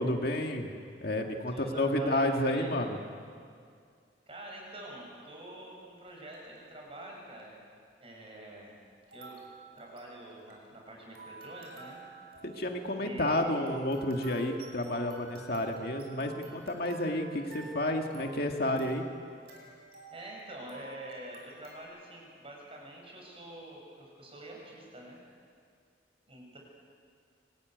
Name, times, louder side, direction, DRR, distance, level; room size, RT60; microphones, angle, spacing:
voice 1, 0.0-3.0 12.4-19.1, left 1 dB, 60° left, 3 dB, 2.1 m, -31 dB
voice 2, 1.5-2.3 2.5-2.7 4.3-7.6 8.0-8.7 9.1-9.4 9.8-12.0 13.0-13.4 20.1-25.2 26.3-26.6, right 1 dB, 35° right, -1 dB, 7.3 m, -46 dB
sound 1, 6.1-6.6 7.4-7.5 9.0-21.8, right 3 dB, 65° right, 6.1 m, -51 dB
25.5 x 20.0 x 9.3 m, 2.2 s
head